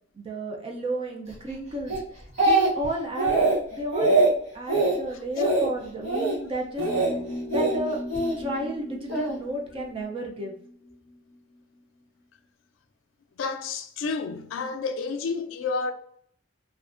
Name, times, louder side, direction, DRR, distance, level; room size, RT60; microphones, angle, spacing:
voice 1, 0.2-1.9 2.4-4.2 4.5-6.8 7.5-8.0 8.4-10.5, right 1 dB, 25° right, 0.4 m, -32 dB
Speech, 1.9-2.9 3.2-3.6 3.9-4.3 4.7-5.0 5.4-5.7 6.0-6.4 6.8-7.1 7.5-8.3 9.1-9.3, right 2 dB, 75° right, 1.0 m, -22 dB
voice 2, 5.1-5.5 8.3-8.4 13.4-15.9, left 4 dB, 80° left, 0.3 m, -31 dB
sound 1, 6.8-11.3, left 1 dB, 10° right, 1.1 m, -38 dB
2.4 x 2.1 x 2.4 m
head